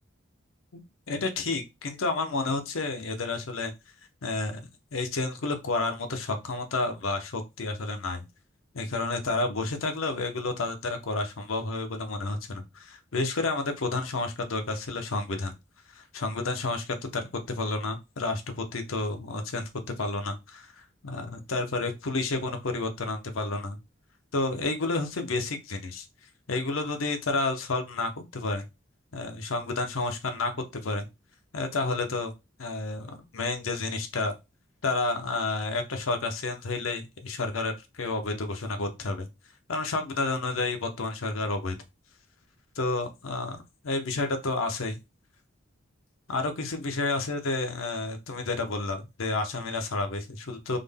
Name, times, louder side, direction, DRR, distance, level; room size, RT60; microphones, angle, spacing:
voice 1, 1.1-3.7 4.2-8.3 8.7-15.5 15.9-19.7 20.0-23.8 24.3-26.0 26.5-28.6 29.1-31.1 31.5-32.3 32.6-34.3 34.8-39.3 39.7-41.8 42.8-45.0 46.3-50.8, left 3 dB, 80° left, 6 dB, 0.7 m, -30 dB
3.6 x 2.1 x 3.5 m, 0.24 s
head